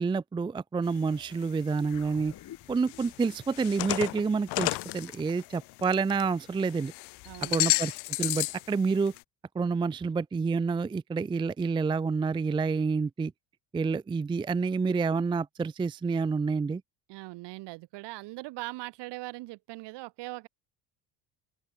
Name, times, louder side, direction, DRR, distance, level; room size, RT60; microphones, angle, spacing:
voice 1, 0.0-2.3 2.7-6.9 7.5-7.9 8.2-9.1 9.5-13.3 13.7-16.8, right 4 dB, 10° right, 0.4 m, -28 dB
sound 1, 0.9-1.4 1.9-2.0 2.8-6.3 6.6-8.7 9.0-9.2, left 23 dB, 70° left, 0.6 m, -32 dB
sound 2, 1.9-6.5, left 12 dB, 50° left, 3.5 m, -53 dB
voice 2, 7.2-7.8 17.1-20.5, right 21 dB, 80° right, 1.3 m, -40 dB
open air
cardioid pair, 150°, 41 cm